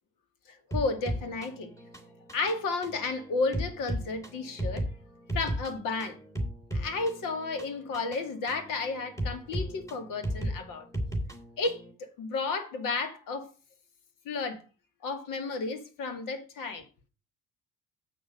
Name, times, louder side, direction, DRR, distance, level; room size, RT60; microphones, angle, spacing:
voice 1, 0.5-1.7 2.3-4.8 5.3-6.2 6.7-10.9 11.6-13.5 14.3-14.6 15.0-16.8, left 3 dB, 65° left, 2.2 m, -32 dB
sound 1, 0.7-11.9, equal, 10° left, 3.0 m, -36 dB
7.6 x 6.4 x 6.6 m
hypercardioid pair, 70°, 35 cm